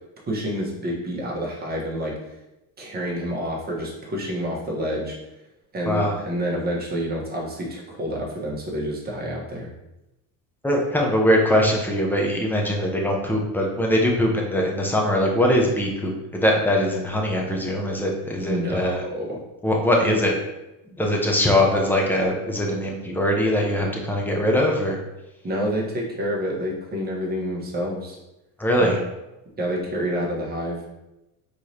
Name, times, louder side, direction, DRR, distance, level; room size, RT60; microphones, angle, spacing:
voice 1, 0.2-2.1 2.8-5.2 5.7-9.7 18.4-19.4 20.0-20.2 25.4-28.2 28.8-29.0 29.6-30.8, equal, 20° right, -4 dB, 1.3 m, -28 dB
voice 2, 5.9-6.2 10.6-19.0 19.6-20.4 21.0-25.0 28.6-29.0, left 1 dB, 5° left, 0 dB, 0.7 m, -22 dB
4.5 x 3.2 x 2.8 m, 0.97 s
supercardioid pair, 110°, 42 cm